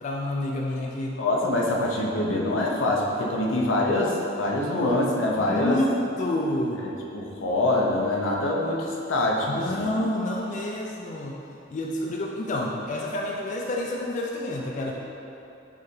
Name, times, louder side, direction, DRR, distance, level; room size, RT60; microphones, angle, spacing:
voice 1, 0.0-1.2 5.4-5.9 6.2-6.9 9.5-11.4 11.7-14.9, left 1 dB, 40° left, -1 dB, 0.3 m, -28 dB
voice 2, 1.2-5.8 7.1-9.5 9.7-9.9, left 1 dB, 85° left, -2 dB, 0.6 m, -24 dB
4.5 x 3.4 x 3.1 m, 2.8 s
head